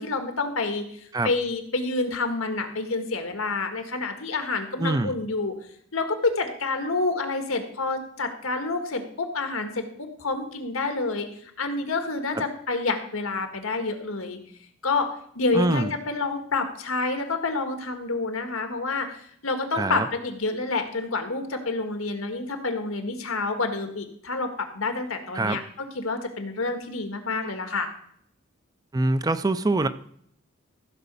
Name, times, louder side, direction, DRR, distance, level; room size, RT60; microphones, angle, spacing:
voice 1, 0.0-5.5 5.9-14.4 14.8-15.1 15.4-25.6 26.0-27.9, left 3 dB, 90° left, 6 dB, 1.8 m, -28 dB
voice 2, 4.8-5.2 12.3-12.4 15.5-15.9 19.7-20.1 25.3-25.6 28.9-29.9, right 2 dB, 20° right, 12 dB, 0.4 m, -24 dB
15.0 x 5.0 x 6.9 m, 0.65 s
head